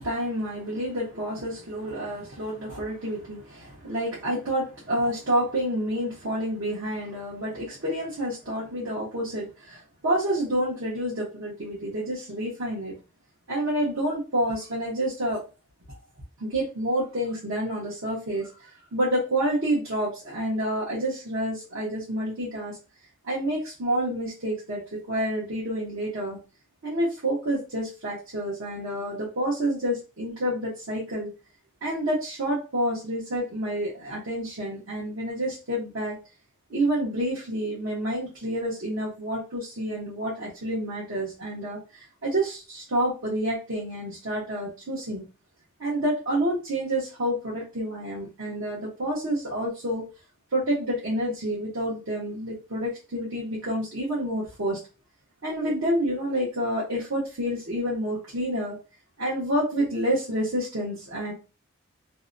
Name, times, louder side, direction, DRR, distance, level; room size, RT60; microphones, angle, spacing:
voice 1, 0.0-13.0 13.5-15.4 16.4-22.8 23.2-26.4 26.8-31.3 31.8-36.1 36.7-45.3 45.8-50.0 50.5-54.8 55.4-58.8 59.2-61.3, right 1 dB, 65° right, -6 dB, 0.8 m, -28 dB
2.7 x 2.1 x 2.5 m, 0.31 s
head